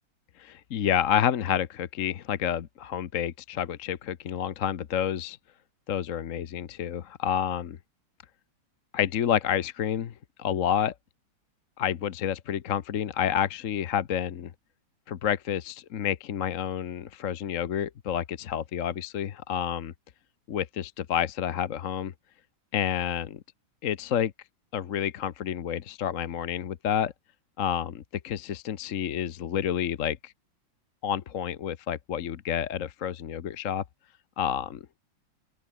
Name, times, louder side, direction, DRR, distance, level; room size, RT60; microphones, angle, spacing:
voice 1, 0.4-5.4 5.9-7.8 8.9-10.9 11.8-14.5 15.1-19.9 20.5-22.1 22.7-23.4 23.8-24.3 24.7-27.1 27.6-30.3 31.0-33.8 34.4-34.8, left 9 dB, 55° left, 1.1 m, -29 dB
open air
omnidirectional pair, 2.1 m